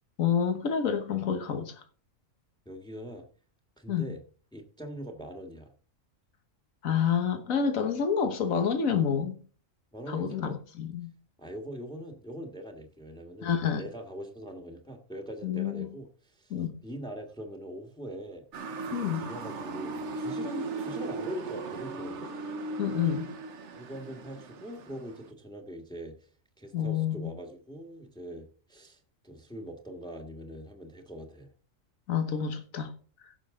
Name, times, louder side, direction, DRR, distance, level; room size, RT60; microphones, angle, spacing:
voice 1, 0.2-1.8 3.9-4.1 6.8-9.4 10.1-11.1 13.4-13.8 15.4-15.9 16.5-16.7 18.9-19.2 22.8-23.3 26.7-27.3 32.1-32.9, left 7 dB, 90° left, 1.6 m, -28 dB
voice 2, 2.6-3.3 3.8-4.2 4.5-5.7 9.9-10.6 11.4-16.5 16.8-18.4 18.9-22.3 23.8-26.3 26.6-31.5, equal, 5° left, 1.5 m, -42 dB
Motor vehicle (road) / Siren, 18.5-25.3, right 3 dB, 60° right, 1.2 m, -37 dB
15.5 x 6.3 x 3.7 m
omnidirectional pair, 1.4 m